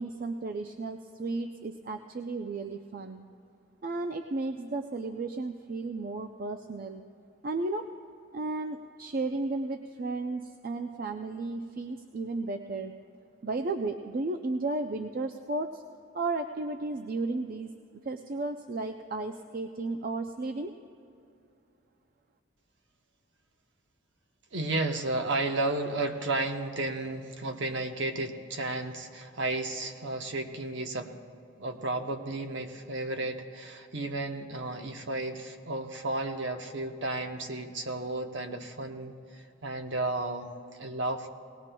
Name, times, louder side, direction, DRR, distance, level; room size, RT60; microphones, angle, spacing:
voice 1, 0.0-3.2 3.8-7.0 7.4-7.9 8.3-12.9 13.4-15.8 16.1-17.7 18.0-20.7, right 3 dB, 45° right, 5 dB, 0.4 m, -34 dB
voice 2, 24.5-31.1 31.6-40.5 40.8-41.3, right 2 dB, 60° right, 4 dB, 0.9 m, -33 dB
20.0 x 18.0 x 2.2 m, 2.5 s
head